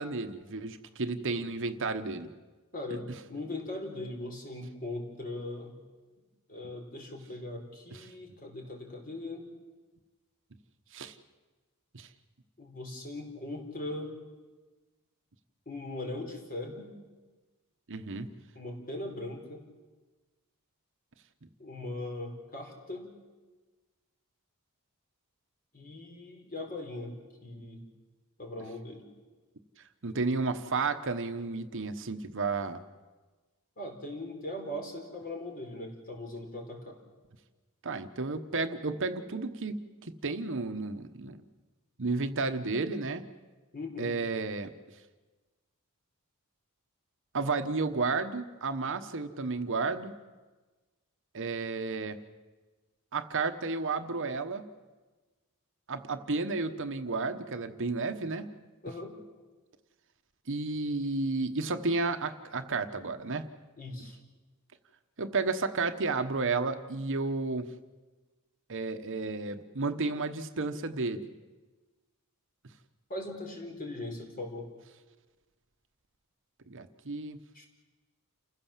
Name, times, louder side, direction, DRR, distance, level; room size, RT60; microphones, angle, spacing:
voice 1, 0.0-2.3 7.9-8.0 10.9-11.1 11.9-12.1 17.9-18.3 30.0-32.8 37.8-41.4 42.0-43.2 44.0-44.7 47.3-50.1 51.3-52.2 53.1-54.6 55.9-58.5 60.5-63.5 65.2-67.7 68.7-71.3 76.7-77.4, right 3 dB, 60° right, 8 dB, 1.1 m, -32 dB
voice 2, 2.7-5.8 6.5-9.5 12.6-14.1 15.7-16.9 18.5-19.6 21.6-23.1 25.7-27.8 28.4-29.0 33.8-37.0 43.7-44.1 58.8-59.1 63.8-64.2 73.1-74.7 77.5-77.7, left 2 dB, 40° left, 2 dB, 4.5 m, -40 dB
29.5 x 15.5 x 7.4 m, 1.3 s
head